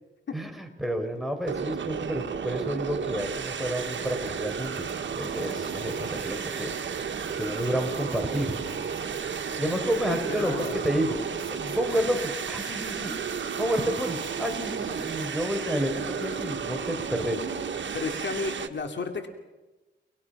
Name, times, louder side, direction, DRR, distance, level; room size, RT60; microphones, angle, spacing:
voice 1, 0.3-4.9 5.1-6.7 7.4-8.5 9.6-13.1 13.6-17.4, equal, ahead, 3 dB, 5.5 m, -30 dB
sound 1, 1.5-18.7, right 6 dB, 75° right, 1.7 m, -33 dB
sound 2, 3.7-16.5, right 3 dB, 50° right, 3.9 m, -46 dB
voice 2, 10.1-10.7 17.9-19.3, left 4 dB, 70° left, 5 dB, 2.7 m, -32 dB
29.5 x 20.5 x 6.0 m, 1.1 s
cardioid pair, 65°, 19 cm